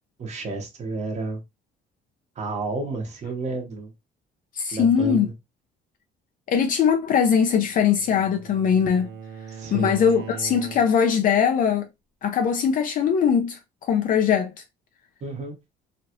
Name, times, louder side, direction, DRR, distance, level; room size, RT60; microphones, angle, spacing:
voice 1, 0.2-1.4 2.4-3.9 4.7-5.3 9.5-10.0 15.2-15.5, right 3 dB, 40° right, 1.2 m, -31 dB
voice 2, 4.5-5.3 6.5-9.1 9.7-11.9 12.2-14.5, left 7 dB, 55° left, 0.5 m, -21 dB
Bowed string instrument, 7.3-11.2, right 7 dB, 80° right, 0.9 m, -40 dB
3.1 x 2.4 x 2.9 m
cardioid pair, 110°, 17 cm